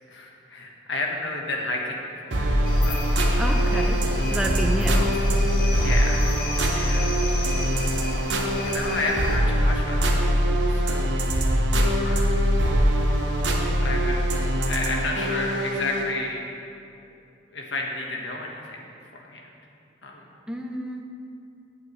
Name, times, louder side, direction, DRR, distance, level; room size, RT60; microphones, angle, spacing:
voice 1, 0.1-2.5 2.8-3.3 5.7-6.2 6.7-7.4 8.5-10.4 10.7-11.6 12.0-12.5 13.8-16.5 17.5-19.5 20.0-20.2, left 2 dB, 80° left, 0 dB, 1.4 m, -32 dB
sound 1, 2.3-16.1, equal, 75° right, 1.1 m, -23 dB
sound 2, 2.6-9.4, left 1 dB, 45° left, 1.4 m, -33 dB
voice 2, 3.4-5.1 20.5-21.0, equal, 5° right, 1 dB, 0.5 m, -30 dB
15.5 x 8.8 x 3.2 m, 2.6 s
head